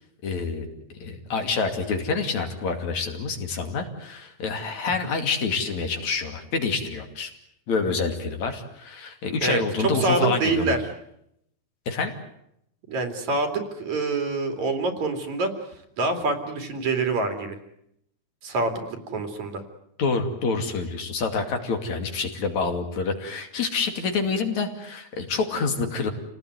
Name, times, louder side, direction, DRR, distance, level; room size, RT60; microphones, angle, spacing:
voice 1, 0.2-0.7 1.0-7.3 7.7-10.8 11.9-12.1 20.0-26.1, left 4 dB, 65° left, 5 dB, 3.8 m, -27 dB
voice 2, 9.4-10.8 12.9-15.5 16.0-17.6 18.4-19.6, right 3 dB, 65° right, 6 dB, 4.0 m, -26 dB
28.5 x 18.5 x 9.6 m, 0.78 s
omnidirectional pair, 3.6 m